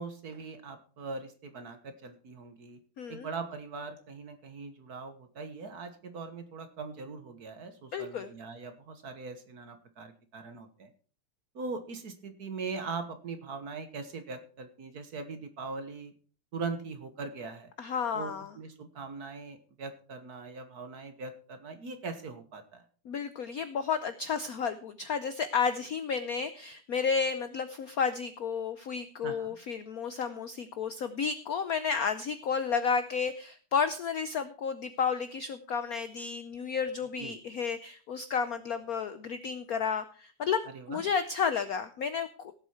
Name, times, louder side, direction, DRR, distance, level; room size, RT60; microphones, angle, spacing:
voice 1, 0.0-2.8 3.1-10.9 11.5-16.1 16.5-17.7 18.1-22.8 29.2-29.6 37.2-37.4 40.7-41.0, right 4 dB, 50° right, 9 dB, 1.6 m, -41 dB
voice 2, 3.0-3.3 7.9-8.3 17.8-18.5 23.1-42.5, left 6 dB, 70° left, 11 dB, 0.8 m, -32 dB
17.0 x 7.8 x 4.4 m, 0.42 s
omnidirectional pair, 2.4 m